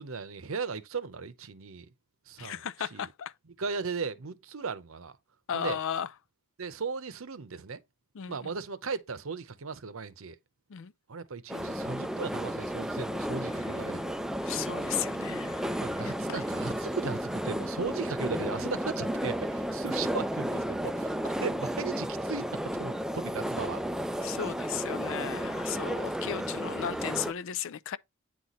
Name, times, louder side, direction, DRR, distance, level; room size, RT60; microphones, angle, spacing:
voice 1, 0.0-1.9 2.3-3.1 3.6-5.2 5.5-5.8 6.6-7.8 8.3-10.4 11.1-14.2 15.8-23.8 24.1-24.4 26.2-26.6, right 4 dB, 70° right, 0.8 m, -37 dB
voice 2, 2.4-3.3 5.5-6.1 8.1-8.5 10.7-10.9 14.4-16.4 24.2-28.0, left 9 dB, 65° left, 0.4 m, -35 dB
sound 1, 11.5-27.3, equal, ahead, 0.3 m, -33 dB
8.8 x 4.1 x 3.0 m
head